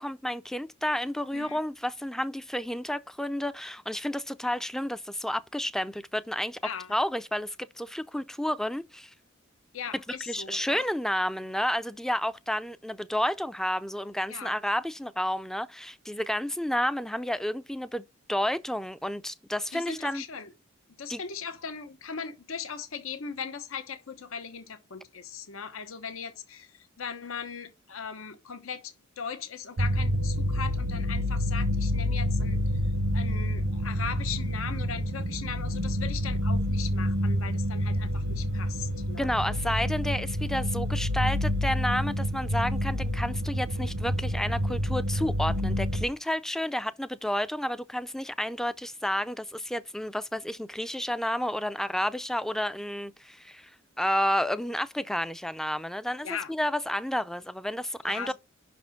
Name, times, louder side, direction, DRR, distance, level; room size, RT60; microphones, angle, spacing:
voice 1, 0.0-6.6 6.9-9.1 9.9-20.2 21.1-21.2 39.2-53.7 54.0-58.3, equal, ahead, 0.3 m, -31 dB
voice 2, 6.6-7.0 9.7-10.8 14.3-14.6 19.7-20.5 21.0-26.7 27.0-32.6 33.1-39.3 56.2-56.5 58.1-58.3, left 6 dB, 90° left, 0.9 m, -39 dB
sound 1, 29.8-46.1, equal, 70° right, 0.8 m, -28 dB
5.9 x 4.3 x 5.7 m
head